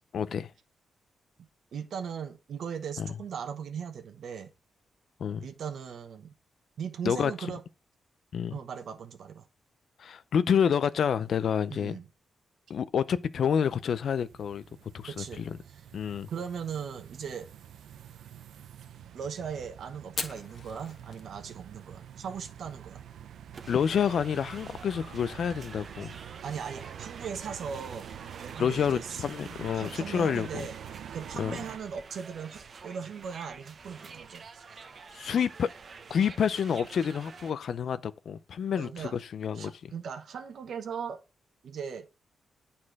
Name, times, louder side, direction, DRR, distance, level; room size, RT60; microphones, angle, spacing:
voice 1, 0.1-0.5 3.0-3.1 5.2-5.4 7.0-7.3 8.3-8.5 10.0-12.0 12.7-14.6 14.9-15.6 15.9-16.3 23.7-26.1 28.6-30.6 31.4-31.6 35.1-35.7 36.1-39.9, left 7 dB, 55° left, 0.5 m, -28 dB
voice 2, 1.7-4.5 5.4-6.3 6.8-7.6 8.5-9.5 11.7-12.0 15.1-15.8 16.3-17.5 19.1-23.0 26.4-28.1 28.4-29.2 29.7-30.7 31.1-34.4 38.7-39.2 39.5-41.2 41.6-42.1, right 7 dB, 65° right, 1.0 m, -38 dB
sound 1, 13.2-31.8, right 9 dB, 85° right, 0.6 m, -46 dB
Fire, 20.0-29.2, left 4 dB, 40° left, 1.3 m, -47 dB
sound 2, 23.5-37.5, right 5 dB, 40° right, 0.8 m, -48 dB
9.7 x 4.3 x 4.7 m
wide cardioid pair, 160°, 0 cm